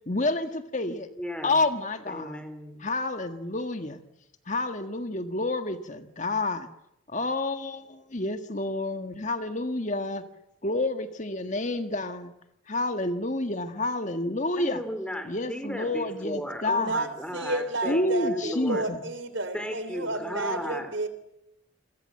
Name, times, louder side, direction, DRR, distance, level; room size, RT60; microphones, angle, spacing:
voice 1, 0.1-1.1 1.4-2.4 2.8-4.0 4.5-6.7 7.1-10.2 10.6-12.3 12.7-14.8 15.2-17.0 17.8-19.0, left 2 dB, 40° left, 8 dB, 1.7 m, -29 dB
voice 2, 1.1-1.6 2.1-2.9 14.6-18.9 19.5-20.9, equal, 5° left, 8 dB, 4.0 m, -35 dB
voice 3, 16.8-21.1, right 2 dB, 70° right, 12 dB, 3.2 m, -31 dB
29.0 x 22.5 x 7.8 m, 0.82 s
head